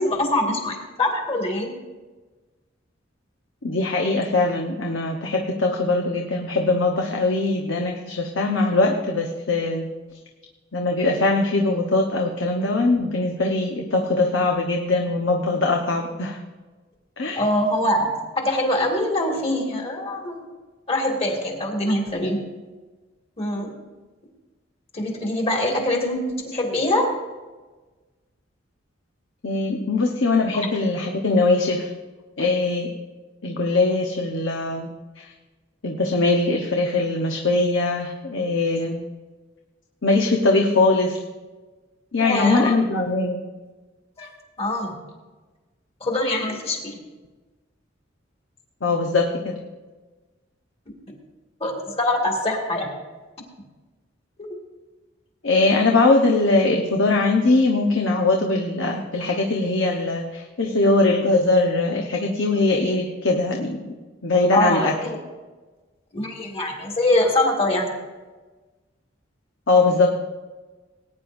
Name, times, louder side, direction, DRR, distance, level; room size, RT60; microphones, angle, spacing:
voice 1, 0.0-1.7 17.3-20.4 20.9-22.4 23.4-23.7 24.9-27.1 42.2-42.8 44.2-44.3 44.6-45.0 46.0-47.0 51.6-52.9 54.4-54.5 64.5-65.2 66.1-67.9, left 1 dB, 30° left, 1 dB, 2.2 m, -23 dB
voice 2, 3.6-9.9 10.7-16.4 17.2-17.4 29.4-31.9 32.4-32.9 33.4-34.9 35.2-35.3 35.8-39.0 40.0-41.2 42.1-43.4 48.8-49.6 55.4-64.0 64.2-64.9 69.7-70.1, left 2 dB, 80° left, 1 dB, 1.1 m, -21 dB
19.5 x 9.7 x 2.6 m, 1.3 s
head